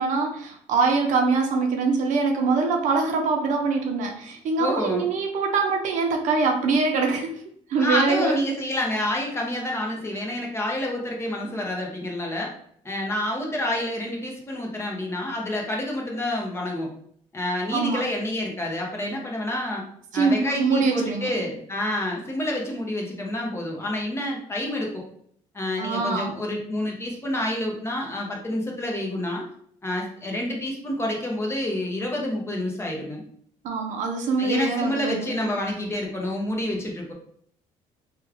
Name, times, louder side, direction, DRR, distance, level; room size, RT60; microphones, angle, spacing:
voice 1, 0.0-7.4 7.7-8.4 17.7-18.0 20.1-21.3 25.8-26.3 33.6-35.3, right 4 dB, 65° right, 3 dB, 0.7 m, -23 dB
voice 2, 4.6-5.1 7.8-12.5 12.8-16.9 17.3-19.8 20.1-25.0 25.5-29.5 29.8-33.2 34.4-37.1, left 1 dB, 20° left, -1 dB, 0.8 m, -28 dB
3.1 x 2.4 x 3.4 m, 0.63 s
cardioid pair, 130°, 14 cm